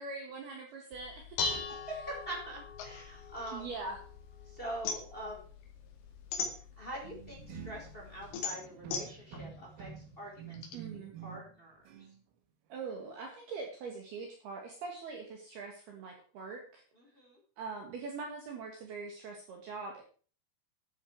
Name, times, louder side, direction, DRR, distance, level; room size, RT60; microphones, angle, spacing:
voice 1, 0.0-1.4 3.5-4.0 10.7-11.1 12.7-16.8 17.6-20.0, right 4 dB, 60° right, 2 dB, 3.2 m, -42 dB
Dishes pots and pans, 0.9-8.3, left 4 dB, 90° left, 4.9 m, -43 dB
voice 2, 1.5-3.7 4.5-5.4 6.8-10.6 10.9-11.9 17.0-17.4, right 1 dB, 10° left, -2 dB, 4.4 m, -44 dB
Dropping paperclips in glass container, 2.8-4.3 4.6-7.1 7.6-10.7, left 5 dB, 75° left, 4.6 m, -40 dB
sound 1, 7.0-11.6 11.9-12.2, right 7 dB, 80° right, 4.4 m, -49 dB
12.0 x 11.5 x 4.7 m, 0.41 s
omnidirectional pair, 5.9 m